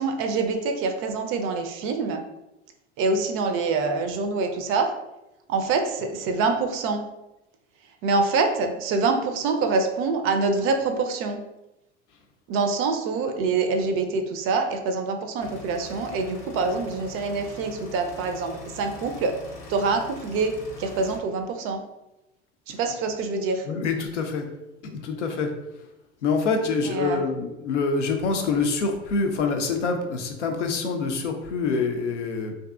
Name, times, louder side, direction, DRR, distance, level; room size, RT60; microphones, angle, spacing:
voice 1, 0.0-2.2 3.0-4.9 5.5-7.0 8.0-11.4 12.5-19.4 19.7-20.5 20.8-21.8 22.7-23.7 26.8-27.2, right 4 dB, 40° right, 5 dB, 0.4 m, -25 dB
sound 1, 15.4-21.2, left 3 dB, 40° left, 0.7 m, -43 dB
voice 2, 23.7-24.5 24.8-25.5 26.2-32.5, left 4 dB, 85° left, 4 dB, 0.5 m, -26 dB
2.6 x 2.5 x 2.3 m, 0.94 s
hypercardioid pair, 75°, 35 cm